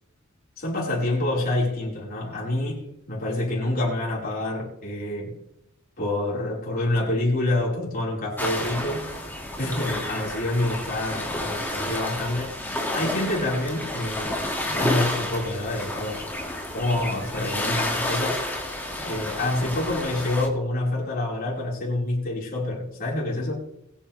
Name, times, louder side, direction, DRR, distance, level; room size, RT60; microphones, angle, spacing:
voice 1, 0.6-5.3 6.0-9.0 9.6-12.5 12.9-14.4 14.6-16.2 16.7-18.4 19.0-23.6, left 1 dB, 45° left, -5 dB, 5.0 m, -27 dB
sound 1, 8.4-20.5, left 1 dB, 10° left, 2.4 m, -30 dB
22.0 x 8.7 x 3.5 m, 0.79 s
head